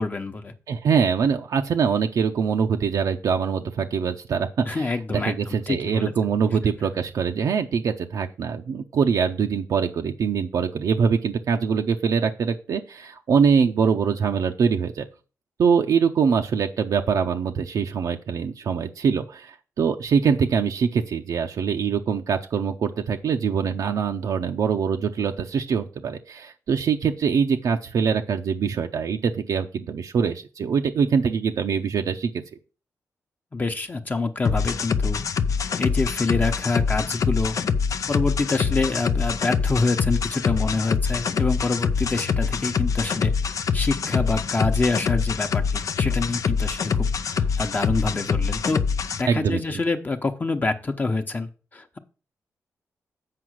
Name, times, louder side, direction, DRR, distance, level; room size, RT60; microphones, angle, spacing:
voice 1, 0.0-0.5 4.7-6.1 33.5-35.2 35.8-37.6 38.1-43.3 43.7-48.8 49.2-52.0, left 3 dB, 30° left, 6 dB, 0.9 m, -26 dB
voice 2, 0.7-15.1 15.6-32.3 49.3-49.6, right 6 dB, 75° right, 3 dB, 0.7 m, -23 dB
sound 1, 34.4-49.2, left 6 dB, 65° left, 0.5 m, -25 dB
7.7 x 5.0 x 6.3 m, 0.35 s
cardioid pair, 95°, 6 cm